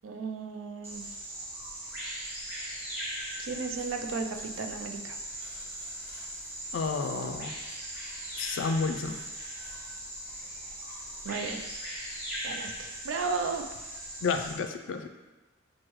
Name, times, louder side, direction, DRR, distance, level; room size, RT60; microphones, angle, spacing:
voice 1, 0.0-1.1 3.4-5.2 11.2-11.7 12.4-13.7, right 4 dB, 90° right, 5 dB, 0.4 m, -34 dB
Bird vocalization bird call bird song, 0.8-14.5, right 1 dB, 10° right, 1.0 m, -39 dB
voice 2, 6.7-7.5 8.4-9.2 14.2-15.1, left 4 dB, 70° left, 7 dB, 0.3 m, -30 dB
6.1 x 2.2 x 3.0 m, 1.1 s
head